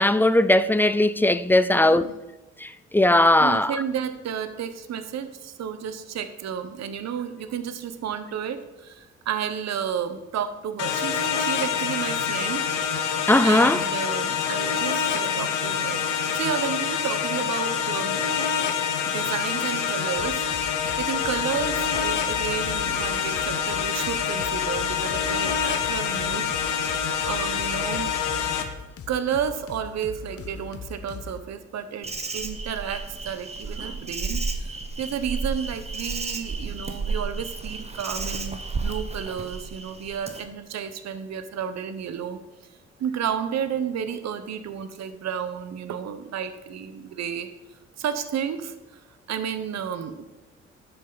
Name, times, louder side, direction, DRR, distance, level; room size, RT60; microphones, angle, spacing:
voice 1, 0.0-2.1 2.6-3.7 13.3-13.8, left 1 dB, 5° left, 0.3 m, -19 dB
voice 2, 1.7-2.1 3.4-12.7 13.4-16.0 16.3-18.2 19.0-20.5 21.0-26.9 27.2-28.2 29.1-42.4 43.0-47.5 48.0-49.0 49.3-50.3, right 8 dB, 60° right, 0.9 m, -32 dB
sound 1, 10.8-28.6, left 7 dB, 85° left, 0.9 m, -26 dB
sound 2, 20.1-31.4, left 5 dB, 50° left, 0.8 m, -41 dB
Insect, 32.0-40.4, right 4 dB, 20° right, 0.9 m, -32 dB
10.0 x 6.6 x 3.9 m
cardioid pair, 90°, 30 cm